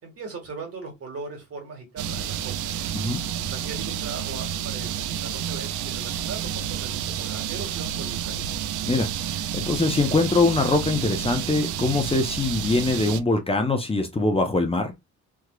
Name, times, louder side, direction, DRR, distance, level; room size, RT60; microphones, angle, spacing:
voice 1, 0.0-2.8 3.4-4.9 5.2-8.6, right 4 dB, 50° right, 2.0 m, -39 dB
sound 1, 2.0-13.2, right 9 dB, 80° right, 0.5 m, -30 dB
voice 2, 8.9-14.9, left 3 dB, 20° left, 0.8 m, -23 dB
3.5 x 2.9 x 2.3 m
cardioid pair, 90°, 30 cm